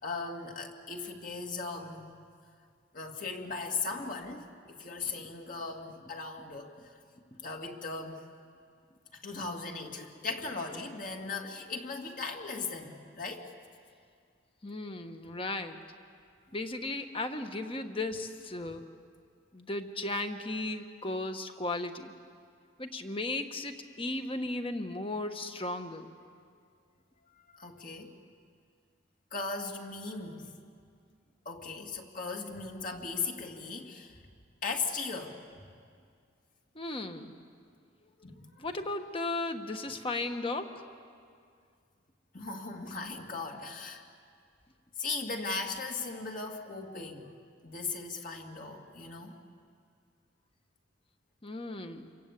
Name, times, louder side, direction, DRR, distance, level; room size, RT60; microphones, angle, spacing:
voice 1, 0.0-2.1 2.9-6.7 7.4-8.2 9.1-13.5 27.5-28.2 29.3-30.5 31.5-34.2 34.6-35.4 38.2-38.6 42.3-44.0 45.0-47.3 47.6-49.4, left 4 dB, 45° left, 2 dB, 2.3 m, -38 dB
voice 2, 14.6-15.8 16.5-18.8 19.5-22.1 22.8-26.1 36.7-37.3 38.6-40.7 51.4-52.1, left 2 dB, 30° left, 7 dB, 1.4 m, -35 dB
28.5 x 23.5 x 8.4 m, 2.3 s
head